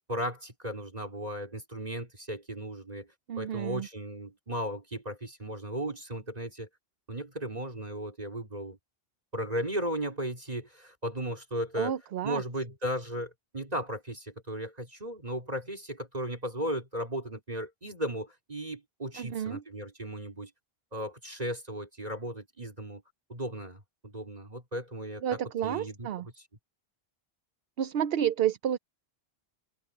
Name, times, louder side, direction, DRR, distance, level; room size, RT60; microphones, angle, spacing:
voice 1, 0.0-3.1 3.4-6.7 7.1-8.8 9.3-11.9 12.2-20.5 20.9-23.0 23.3-26.1, equal, 40° right, 3.6 m, -36 dB
voice 2, 3.3-3.9 11.8-12.4 19.2-19.6 25.2-26.3 27.8-28.8, right 10 dB, 70° right, 0.8 m, -30 dB
omnidirectional pair, 1.1 m